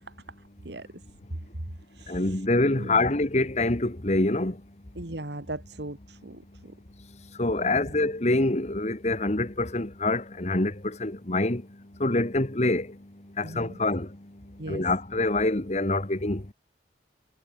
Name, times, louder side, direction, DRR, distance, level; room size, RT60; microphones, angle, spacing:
voice 1, 0.6-1.0 1.9-3.1 4.9-6.7 7.6-8.0 13.4-13.8 14.6-14.9, right 1 dB, 70° right, 2.3 m, -39 dB
voice 2, 2.1-4.5 7.4-11.6 12.0-12.9 13.4-14.1 14.7-16.5, left 2 dB, 40° left, 1.6 m, -25 dB
head